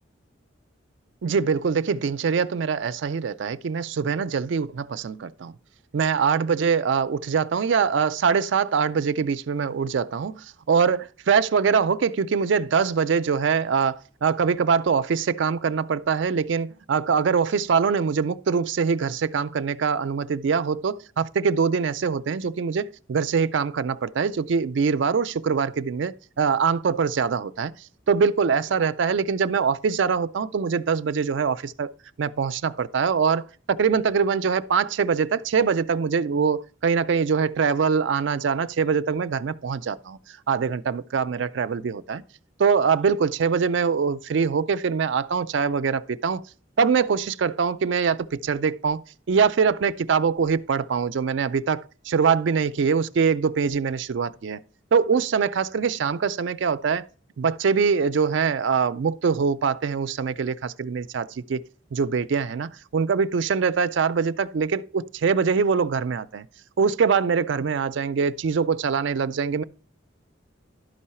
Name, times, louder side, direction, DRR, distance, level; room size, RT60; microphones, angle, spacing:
voice 1, 1.2-5.5 5.9-27.7 28.1-31.9 32.2-40.2 40.5-42.2 42.6-46.4 46.8-49.0 49.3-54.6 54.9-57.1 57.4-61.6 61.9-66.5 66.8-69.6, right 6 dB, 65° right, 0.4 m, -23 dB
12.0 x 4.7 x 4.3 m
head